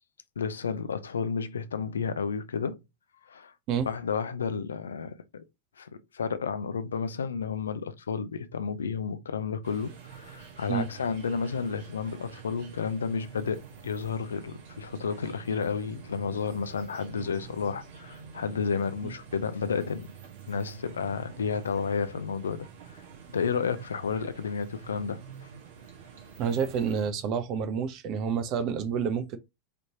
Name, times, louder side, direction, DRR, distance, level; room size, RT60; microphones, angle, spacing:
voice 1, 0.4-2.8 3.3-3.5 3.8-5.4 5.8-20.1 20.5-23.0 23.3-25.2, left 5 dB, 75° left, 0.5 m, -31 dB
sound 1, 9.6-27.1, right 7 dB, 60° right, 1.5 m, -47 dB
voice 2, 26.4-29.4, right 7 dB, 45° right, 0.7 m, -29 dB
5.1 x 3.0 x 2.8 m
figure-of-eight pair, 85°, 0 cm